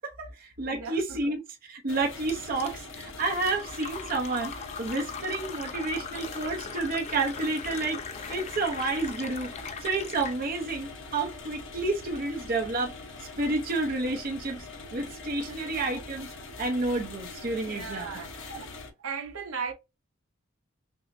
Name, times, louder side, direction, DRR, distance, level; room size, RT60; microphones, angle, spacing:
voice 1, 0.0-4.5 4.8-8.0 8.3-9.5 9.8-13.0 13.4-16.3 16.6-18.1 18.5-18.6, right 3 dB, 45° right, 0.7 m, -30 dB
voice 2, 0.7-1.2 7.3-7.4 15.5-15.6 17.6-18.7 19.0-19.7, right 5 dB, 75° right, 0.9 m, -37 dB
sound 1, 1.9-18.9, left 3 dB, 60° left, 1.0 m, -43 dB
Fill (with liquid), 2.3-10.4, left 5 dB, 30° left, 0.4 m, -40 dB
6.1 x 2.0 x 2.6 m
head